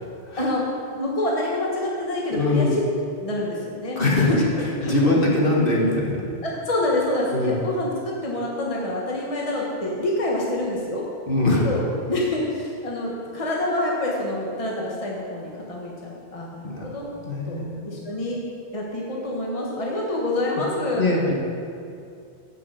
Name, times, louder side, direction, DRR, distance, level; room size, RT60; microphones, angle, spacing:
voice 1, 0.9-2.8 3.2-4.0 4.3-4.4 4.8-5.2 6.4-11.0 11.5-17.1 17.5-18.4 18.7-21.2, left 1 dB, 30° left, -3 dB, 1.4 m, -26 dB
voice 2, 2.3-2.7 4.0-4.3 4.6-6.2 7.3-7.6 11.3-11.7 16.6-16.8 17.2-17.8 21.0-21.3, left 2 dB, 55° left, -3 dB, 1.8 m, -22 dB
11.0 x 6.0 x 7.5 m, 2.5 s
omnidirectional pair, 1.1 m